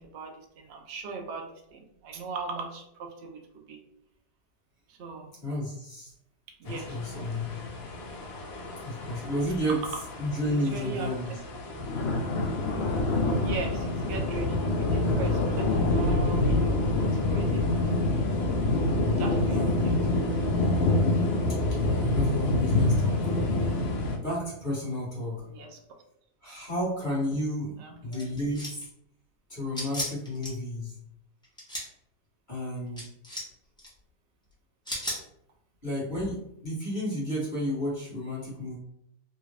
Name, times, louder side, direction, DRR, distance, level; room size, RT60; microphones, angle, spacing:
voice 1, 0.0-3.8 4.9-5.3 6.6-7.0 10.4-11.1 13.4-17.8 19.2-20.0 25.3-25.8 27.8-28.3, right 4 dB, 80° right, 2 dB, 0.5 m, -39 dB
voice 2, 5.4-6.1 6.6-7.5 8.8-9.8 10.2-11.4 17.8-17.9 19.5-20.3 21.7-23.3 24.2-25.5 26.4-28.9 29.5-31.0 32.5-33.1 35.8-36.4 36.6-38.8, equal, 30° left, -8 dB, 1.4 m, -32 dB
sound 1, 6.7-24.2, left 2 dB, 80° left, 0.5 m, -27 dB
sound 2, 28.1-28.8 29.7-30.5 31.4-31.9 33.0-33.5 33.8-33.9 34.9-35.2, left 1 dB, 5° left, 0.6 m, -34 dB
3.3 x 2.4 x 3.2 m, 0.77 s
omnidirectional pair, 1.9 m